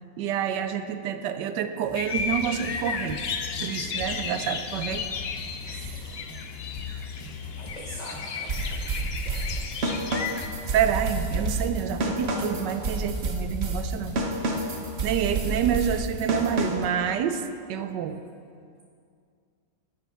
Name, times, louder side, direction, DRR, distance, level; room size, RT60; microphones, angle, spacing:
voice 1, 0.2-3.2 3.6-5.1 5.7-6.0 10.7-14.2 15.0-17.4 17.7-18.2, right 8 dB, 75° right, 10 dB, 1.2 m, -28 dB
sound 1, 1.8-16.9, left 4 dB, 10° left, 1.4 m, -41 dB
sound 2, 1.9-10.5, left 5 dB, 85° left, 0.5 m, -34 dB
voice 2, 7.6-9.6, equal, 30° left, -3 dB, 1.0 m, -43 dB
sound 3, 8.5-17.0, right 2 dB, 45° right, 1.0 m, -29 dB
11.5 x 8.8 x 5.9 m, 2.3 s
omnidirectional pair, 2.0 m